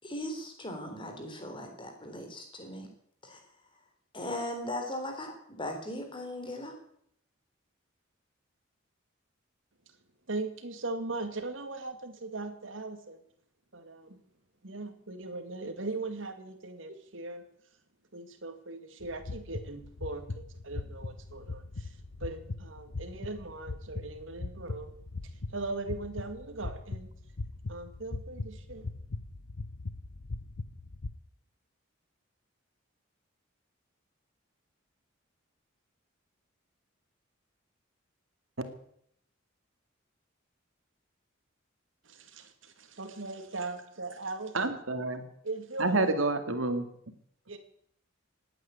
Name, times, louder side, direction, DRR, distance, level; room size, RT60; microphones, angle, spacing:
voice 1, 0.0-2.9 3.2-3.4 4.1-6.7, left 1 dB, 25° left, 4 dB, 3.6 m, -38 dB
voice 2, 10.3-13.2 13.7-14.2 14.6-17.4 18.1-24.9 25.5-27.1 27.7-28.9 42.0-44.6 45.4-46.1 47.5-47.6, right 3 dB, 70° right, 8 dB, 2.2 m, -39 dB
sound 1, 19.0-31.1, left 3 dB, 85° left, 1.0 m, -40 dB
voice 3, 44.5-45.2 45.8-46.8, right 2 dB, 85° right, 8 dB, 2.2 m, -28 dB
19.0 x 9.2 x 8.3 m, 0.68 s
head